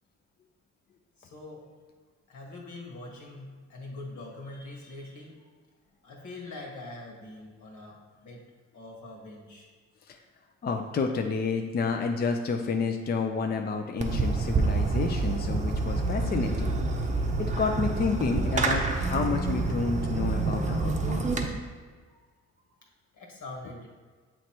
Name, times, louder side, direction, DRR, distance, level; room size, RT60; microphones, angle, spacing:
voice 1, 1.2-1.6 2.3-5.3 6.0-8.0 8.2-8.4 8.7-9.7 22.1-22.2 23.1-23.9, left 2 dB, 75° left, -1 dB, 1.6 m, -43 dB
voice 2, 10.6-16.7 17.4-21.3, left 4 dB, 35° left, 4 dB, 0.4 m, -30 dB
Fireworks, 14.0-21.4, right 3 dB, 25° right, 0.7 m, -27 dB
7.7 x 3.1 x 4.4 m, 1.5 s
cardioid pair, 90°, 30 cm